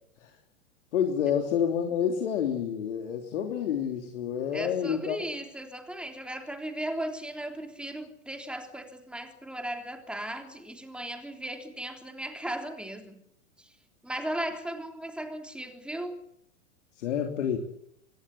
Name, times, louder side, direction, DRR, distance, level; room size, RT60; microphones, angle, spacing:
voice 1, 0.9-5.2 17.0-17.6, left 8 dB, 60° left, 3.3 m, -28 dB
voice 2, 4.5-13.2 13.6-13.7 14.0-16.2, right 1 dB, ahead, 3.4 m, -36 dB
25.5 x 19.0 x 8.7 m
figure-of-eight pair, 100°, 41 cm